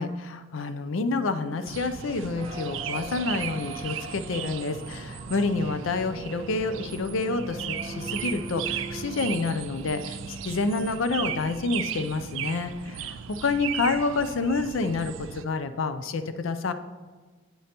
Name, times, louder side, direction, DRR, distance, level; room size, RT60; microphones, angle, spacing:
voice 1, 0.0-16.7, left 3 dB, 90° left, 11 dB, 0.5 m, -28 dB
sound 1, 1.6-15.4, right 9 dB, 85° right, 0.4 m, -36 dB
sound 2, 2.3-11.1, right 1 dB, 30° right, 1.0 m, -41 dB
9.0 x 8.4 x 2.9 m, 1.4 s
head